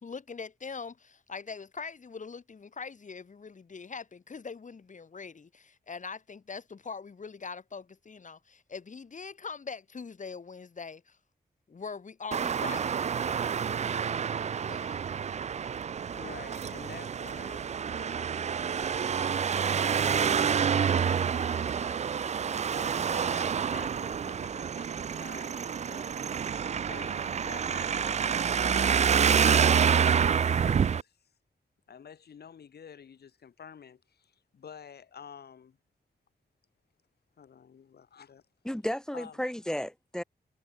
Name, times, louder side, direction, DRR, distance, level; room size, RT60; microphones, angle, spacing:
voice 1, 0.0-11.2 11.7-12.9 14.7-15.0, left 5 dB, 50° left, 2.7 m, -42 dB
Traffic noise roadway noise, 12.3-31.0, right 7 dB, 45° right, 0.4 m, -28 dB
voice 2, 16.1-18.6 20.0-26.1 26.9-29.8 30.4-31.2 31.9-35.8 37.4-38.4 39.1-39.4, left 7 dB, 75° left, 3.2 m, -50 dB
voice 3, 38.6-40.2, equal, 5° left, 1.0 m, -33 dB
cardioid pair, 80°, 17 cm